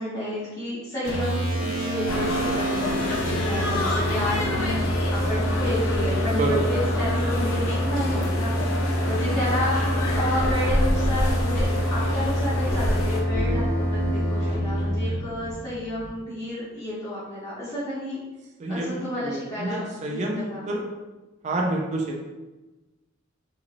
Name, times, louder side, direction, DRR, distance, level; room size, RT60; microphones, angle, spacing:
voice 1, 0.0-4.8 5.1-18.2 18.7-20.7, left 1 dB, 20° left, -12 dB, 0.9 m, -31 dB
sound 1, 1.0-15.2, equal, 55° left, 1.2 m, -26 dB
sound 2, 2.1-13.2, left 2 dB, 85° left, 0.5 m, -28 dB
sound 3, 13.3-16.1, equal, 60° right, 0.9 m, -33 dB
voice 2, 18.6-20.8 21.4-22.2, right 2 dB, 35° right, 0 dB, 0.4 m, -28 dB
2.8 x 2.8 x 2.5 m, 1.1 s
head